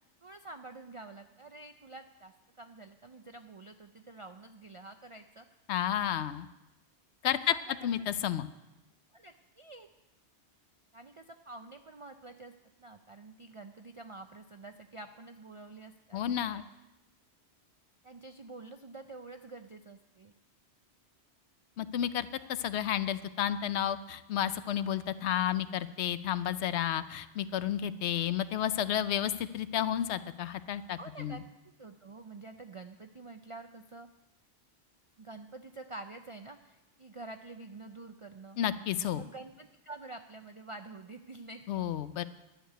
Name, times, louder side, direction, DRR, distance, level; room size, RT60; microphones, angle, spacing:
voice 1, 0.2-5.5 7.5-7.6 9.1-9.9 10.9-12.5 12.8-16.6 18.0-20.3 31.0-31.4 31.8-34.1 35.2-38.6 39.0-41.8, right 2 dB, 55° right, 7 dB, 0.3 m, -48 dB
voice 2, 5.7-6.5 7.2-7.5 7.8-8.5 16.1-16.6 21.8-31.4 38.6-39.2 41.7-42.2, left 10 dB, 75° left, 14 dB, 0.8 m, -31 dB
11.5 x 6.6 x 9.0 m, 1.0 s
omnidirectional pair, 1.2 m